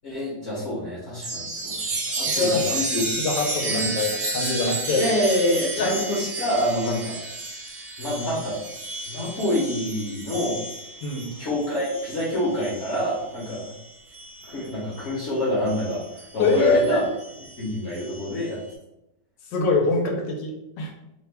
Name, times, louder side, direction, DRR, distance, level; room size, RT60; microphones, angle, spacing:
voice 1, 0.0-1.7 2.1-3.0 3.6-3.8 4.9-7.2 8.0-8.6 9.1-10.6 11.4-13.7 14.5-17.0 17.6-18.6, left 1 dB, 50° left, -6 dB, 0.9 m, -26 dB
Chime, 1.2-15.2 15.7-18.5, right 2 dB, 55° right, 0.8 m, -32 dB
voice 2, 2.3-2.8 3.2-5.0 5.8-6.0 11.0-11.3 16.4-17.0 19.5-20.5 20.8-20.9, left 3 dB, 85° left, 1 dB, 1.3 m, -23 dB
3.3 x 2.2 x 3.3 m, 0.89 s
omnidirectional pair, 1.9 m